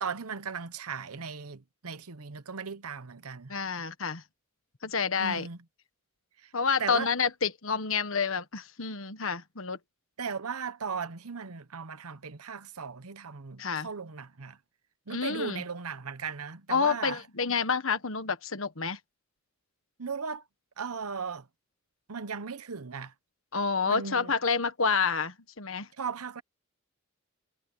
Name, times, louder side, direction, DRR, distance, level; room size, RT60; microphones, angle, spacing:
voice 1, 0.0-3.5 5.2-5.6 6.4-6.5 6.8-7.1 10.2-14.6 15.1-17.2 20.0-20.4 20.8-21.5 22.1-23.1 23.9-24.3 26.0-26.4, right 5 dB, 85° right, 1.0 m, -37 dB
voice 2, 3.5-4.2 4.8-5.5 6.5-9.8 13.6-13.9 15.1-15.6 16.7-19.0 23.5-25.9, left 5 dB, 65° left, 1.5 m, -29 dB
head